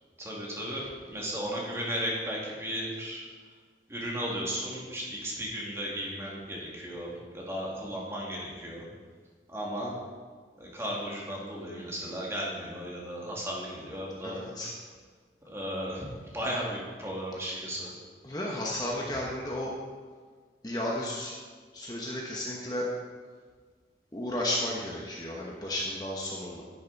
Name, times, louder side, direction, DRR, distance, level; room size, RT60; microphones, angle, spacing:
voice 1, 0.2-3.3 3.9-8.8 9.5-10.0 10.6-14.4 15.5-17.9, equal, 15° right, -4 dB, 2.2 m, -35 dB
voice 2, 14.2-14.7 18.2-19.7 20.6-21.3 21.7-22.9 24.1-26.6, left 1 dB, 20° left, -3 dB, 1.1 m, -33 dB
10.5 x 10.5 x 4.1 m, 1.6 s
head